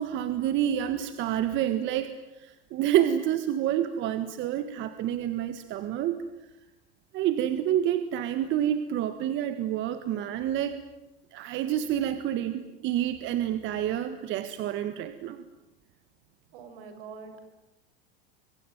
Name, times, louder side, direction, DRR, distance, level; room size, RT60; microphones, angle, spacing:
voice 1, 0.0-6.2 7.1-10.8 11.3-15.4, right 11 dB, 40° right, 11 dB, 1.7 m, -28 dB
voice 2, 16.5-17.4, right 5 dB, 70° right, 8 dB, 6.5 m, -44 dB
26.0 x 24.0 x 9.3 m, 0.99 s
supercardioid pair, 135°, 29 cm